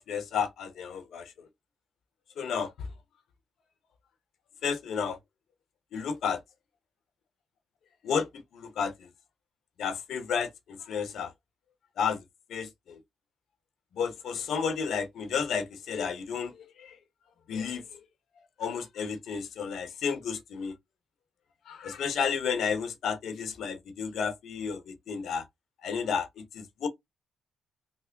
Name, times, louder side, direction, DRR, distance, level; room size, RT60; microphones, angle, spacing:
voice 1, 0.0-1.3 2.4-2.9 4.6-5.2 5.9-6.4 8.0-8.9 9.8-11.3 12.0-12.2 12.5-13.0 13.9-17.0 17.5-18.0 18.6-20.7 21.7-25.5 25.8-26.9, left 6 dB, 70° left, 0.9 m, -32 dB
3.3 x 2.0 x 3.7 m
cardioid pair, 90°, 0 cm